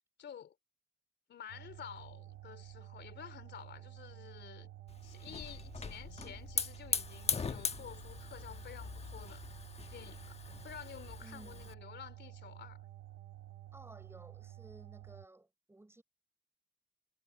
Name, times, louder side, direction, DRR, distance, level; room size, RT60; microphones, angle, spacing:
voice 1, 0.2-0.5 1.3-4.7 5.0-9.4 9.9-10.4 10.6-12.8, left 9 dB, 60° left, 3.3 m, -51 dB
sound 1, 1.5-15.3, right 14 dB, 90° right, 1.4 m, -51 dB
Hiss / Fire, 4.9-11.7, left 5 dB, 30° left, 1.1 m, -40 dB
voice 2, 11.2-11.7 13.7-16.0, right 2 dB, 10° right, 6.1 m, -56 dB
cardioid pair, 90°, 20 cm